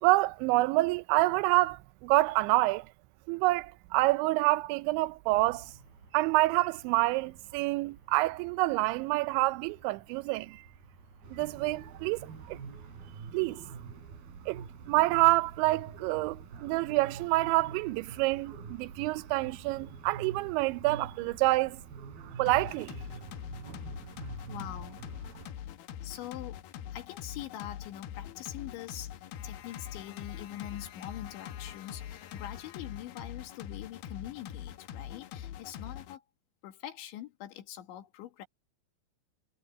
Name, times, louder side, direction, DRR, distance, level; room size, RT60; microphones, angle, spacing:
voice 1, 0.0-2.9 3.3-5.7 6.1-10.6 11.3-12.6 13.3-13.6 14.5-21.8 22.4-23.0, right 20 dB, 85° right, 3.0 m, -27 dB
Traffic noise roadway noise, 5.3-13.3, right 3 dB, 40° right, 8.3 m, -57 dB
sound 1, 11.2-25.5, right 5 dB, 55° right, 6.1 m, -46 dB
sound 2, 22.5-36.2, left 10 dB, 70° left, 2.5 m, -43 dB
voice 2, 24.5-25.0 26.0-26.6 26.9-36.2 36.6-38.5, left 12 dB, 85° left, 4.3 m, -43 dB
omnidirectional pair, 5.2 m